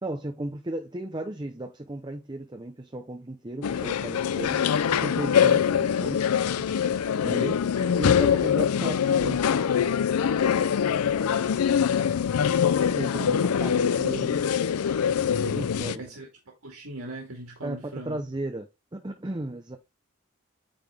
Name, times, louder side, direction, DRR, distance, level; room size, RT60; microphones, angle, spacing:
voice 1, 0.0-6.2 7.2-7.6 7.9-9.4 12.8-14.5 15.3-16.0 17.6-19.8, right 1 dB, 20° right, 0.7 m, -35 dB
sound 1, 3.6-16.0, left 8 dB, 80° left, 0.4 m, -24 dB
voice 2, 6.5-7.9 15.8-18.2, right 2 dB, 70° right, 2.0 m, -42 dB
8.9 x 3.8 x 3.5 m
head